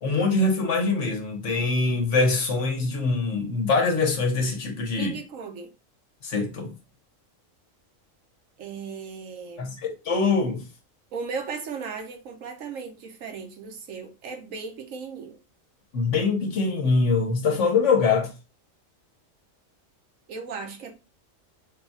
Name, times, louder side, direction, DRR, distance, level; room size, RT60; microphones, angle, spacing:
voice 1, 0.0-5.1 6.2-6.7 9.6-10.6 15.9-18.3, left 4 dB, 65° left, 1.3 m, -23 dB
voice 2, 5.0-5.7 8.6-9.8 11.1-15.4 20.3-20.9, right 5 dB, 80° right, 1.2 m, -36 dB
3.9 x 2.3 x 4.2 m
omnidirectional pair, 1.4 m